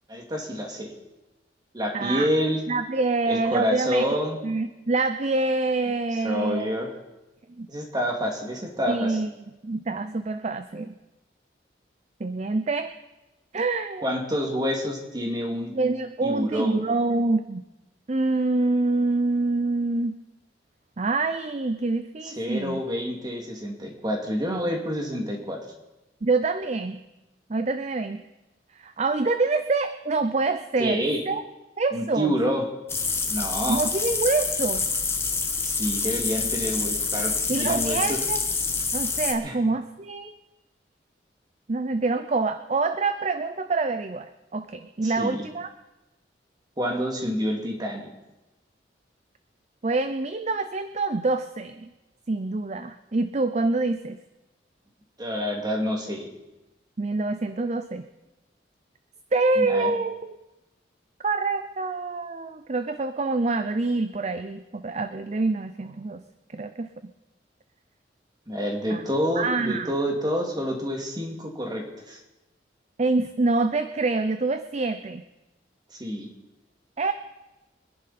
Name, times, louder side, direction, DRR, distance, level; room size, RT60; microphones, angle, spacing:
voice 1, 0.1-0.9 1.7-2.6 3.3-4.4 6.2-7.0 7.7-9.2 14.0-15.7 16.2-16.8 22.2-25.6 30.8-31.2 31.9-32.6 33.3-33.8 35.6-38.2 39.4-39.6 45.0-45.4 46.8-48.1 55.2-56.3 59.6-59.9 68.5-72.2 75.9-76.3, equal, 25° right, 1 dB, 2.4 m, -28 dB
voice 2, 1.9-2.3 2.7-4.1 4.4-6.8 7.6-7.7 8.9-9.3 9.6-10.9 12.2-12.9 13.5-14.0 15.7-17.6 18.1-20.2 21.0-22.8 26.2-27.0 27.5-28.2 28.8-31.4 31.8-32.3 33.7-34.8 37.5-38.4 38.9-40.3 41.7-45.7 49.8-51.9 52.3-54.2 57.0-58.0 59.3-60.4 61.2-66.2 66.5-66.9 68.9-69.0 69.4-69.9 73.0-75.2 77.0-77.1, right 3 dB, 40° right, 10 dB, 0.5 m, -26 dB
sound 1, 32.9-39.3, left 4 dB, 15° left, 1.2 m, -27 dB
24.5 x 10.5 x 4.2 m, 1.0 s
head